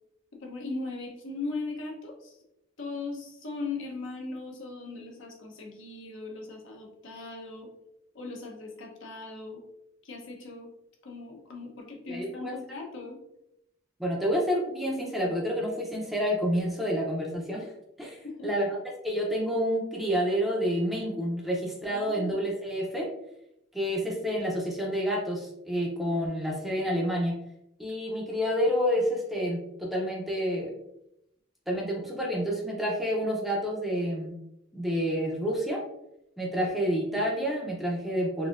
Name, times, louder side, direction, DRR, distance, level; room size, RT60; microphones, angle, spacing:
voice 1, 0.4-2.4 2.8-7.7 8.1-9.6 10.0-10.7 11.0-13.2 18.2-18.5 21.9-22.4, left 3 dB, 65° left, 1 dB, 0.8 m, -38 dB
voice 2, 12.1-12.5 14.0-17.7 18.0-18.8 19.0-23.1 23.7-27.3 27.8-30.7 31.7-34.4 34.7-35.8 36.4-38.5, equal, ahead, -2 dB, 0.5 m, -29 dB
4.0 x 2.6 x 2.4 m, 0.82 s
head